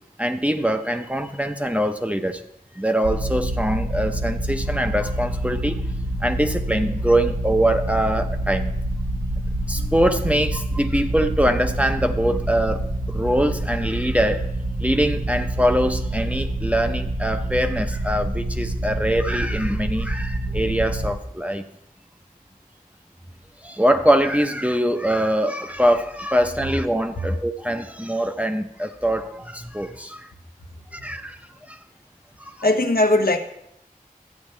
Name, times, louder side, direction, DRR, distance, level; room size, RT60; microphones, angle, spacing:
voice 1, 0.2-2.4 2.8-5.8 6.2-8.7 9.7-14.5 14.8-21.6 23.6-30.3 30.9-31.8 32.4-32.6, equal, 10° right, 6 dB, 0.7 m, -23 dB
sound 1, 3.0-21.1, right 1 dB, 80° right, 1.1 m, -27 dB
voice 2, 32.6-33.4, left 2 dB, 80° left, 4 dB, 1.0 m, -19 dB
12.5 x 8.7 x 3.3 m, 0.81 s
wide cardioid pair, 50°, 15 cm